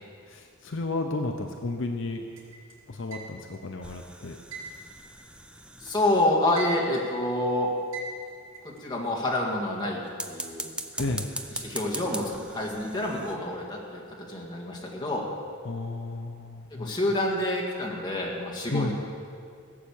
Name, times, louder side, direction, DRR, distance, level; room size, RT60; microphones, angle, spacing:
voice 1, 0.3-2.2 2.9-4.4 11.0-11.2 15.6-17.0 18.7-18.9, left 2 dB, 60° left, 4 dB, 0.7 m, -32 dB
sound 1, 2.4-3.7 4.5-5.9 6.2-7.2 7.9-8.8, right 4 dB, 75° right, 2.8 m, -40 dB
sound 2, 3.8-6.7 10.1-13.4, right 1 dB, 5° right, 0.4 m, -40 dB
voice 2, 5.8-7.7 8.8-10.0 10.3-10.7 11.6-14.0 14.3-15.2 16.8-18.9, left 1 dB, 20° left, -2 dB, 1.9 m, -27 dB
16.5 x 7.6 x 7.1 m, 2.3 s
head